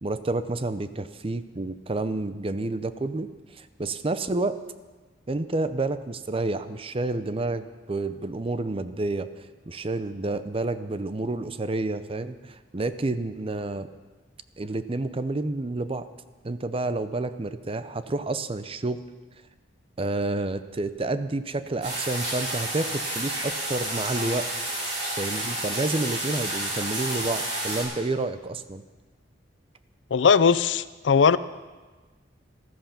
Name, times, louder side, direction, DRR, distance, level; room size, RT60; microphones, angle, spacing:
voice 1, 0.0-4.6 5.3-9.3 9.7-13.9 14.6-16.1 16.4-19.0 20.0-24.5 25.2-28.8, right 2 dB, 30° right, 12 dB, 0.6 m, -29 dB
sound 1, 21.8-27.8, right 1 dB, 70° right, 6.7 m, -30 dB
voice 2, 30.1-31.4, left 6 dB, 75° left, 16 dB, 0.5 m, -19 dB
14.5 x 14.0 x 5.8 m, 1.3 s
head